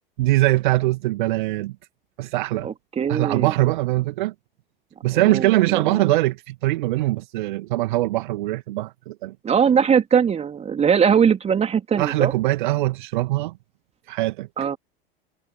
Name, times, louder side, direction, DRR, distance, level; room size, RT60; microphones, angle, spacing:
voice 1, 0.2-1.8 2.2-2.7 3.1-4.3 5.0-9.3 12.0-13.5 14.1-14.5, right 18 dB, 55° right, 2.2 m, -22 dB
voice 2, 2.6-3.5 5.1-6.0 9.4-12.3 14.6-14.8, right 7 dB, 20° right, 3.7 m, -21 dB
figure-of-eight pair, 85°, 29 cm